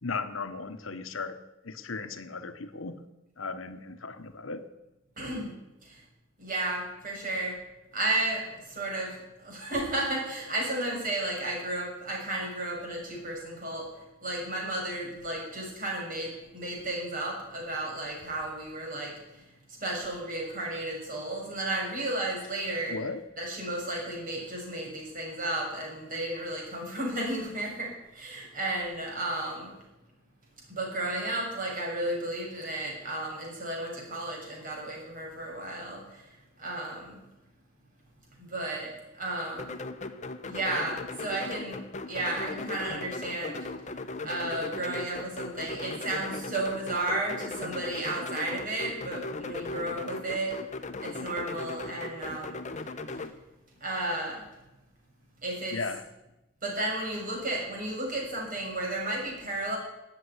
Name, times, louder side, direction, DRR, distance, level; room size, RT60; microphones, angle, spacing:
voice 1, 0.0-1.4 1.6-3.0 3.4-4.6 22.9-23.2 55.7-56.1, left 4 dB, 75° left, 10 dB, 1.2 m, -36 dB
voice 2, 5.2-5.5 5.8-6.0 6.4-7.6 7.9-13.9 14.2-19.4 19.8-23.0 23.4-29.7 30.7-36.3 36.6-37.2 38.4-39.8 40.4-43.7 44.2-50.6 51.0-52.5 53.8-54.4 55.4-55.8 56.6-59.8, right 1 dB, 45° right, -2 dB, 6.5 m, -33 dB
sound 1, 39.6-53.3, left 3 dB, 35° left, 1.0 m, -38 dB
18.5 x 7.7 x 9.7 m, 0.99 s
head